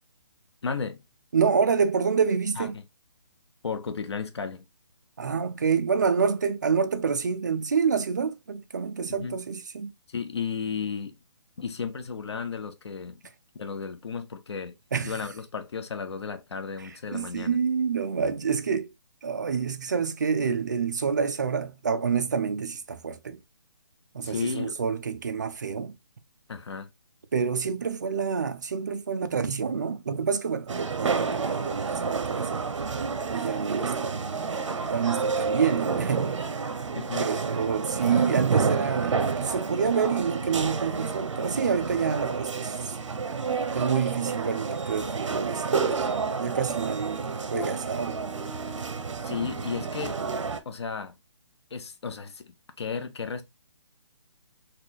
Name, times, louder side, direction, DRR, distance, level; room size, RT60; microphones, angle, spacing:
voice 1, 0.6-1.0 2.6-2.7 3.6-4.7 9.2-9.4 10.1-11.2 11.6-13.2 13.6-14.8 15.0-17.6 24.2-24.7 26.5-26.9 37.0-37.3 47.5-47.7 49.2-50.2 50.7-51.2 51.7-53.4, left 5 dB, 60° left, 0.7 m, -33 dB
voice 2, 1.3-2.8 5.2-9.9 14.9-15.3 16.8-18.9 19.2-23.4 24.1-25.9 27.3-32.6 33.3-34.4 34.7-36.4 37.2-42.9 43.7-48.2, right 6 dB, 35° right, 0.3 m, -28 dB
sound 1, 30.7-50.6, right 5 dB, 80° right, 0.7 m, -29 dB
4.2 x 2.3 x 2.8 m
hypercardioid pair, 175°, 16 cm